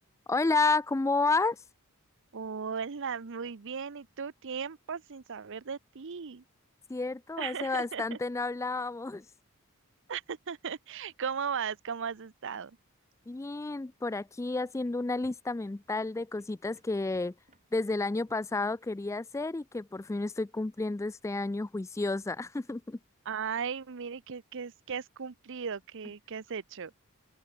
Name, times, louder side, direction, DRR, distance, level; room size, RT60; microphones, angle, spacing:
voice 1, 0.3-1.6 6.9-9.2 13.3-17.3 17.7-23.0, left 3 dB, 15° left, 0.3 m, -31 dB
voice 2, 2.3-6.4 7.4-8.2 10.1-12.8 23.3-26.9, right 6 dB, 60° right, 0.7 m, -37 dB
sound 1, 13.8-19.2, right 2 dB, 35° right, 4.1 m, -67 dB
open air
head